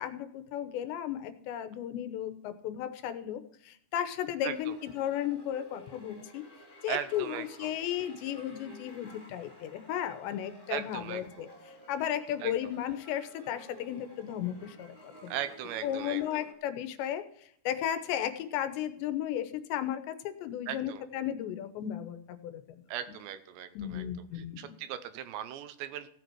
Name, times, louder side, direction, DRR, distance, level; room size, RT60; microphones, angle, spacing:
voice 1, 0.0-6.4 6.8-11.5 11.9-15.3 15.8-17.2 17.7-22.8 23.8-24.6, left 10 dB, 80° left, 10 dB, 3.1 m, -35 dB
voice 2, 4.4-4.8 6.9-7.8 10.7-11.5 12.4-12.5 15.3-16.4 20.7-21.0 22.9-24.0 24.3-26.1, right 11 dB, 80° right, 11 dB, 2.9 m, -38 dB
sound 1, 4.5-16.5, equal, 20° left, 1.5 m, -53 dB
16.0 x 8.1 x 4.6 m, 0.66 s
omnidirectional pair, 5.2 m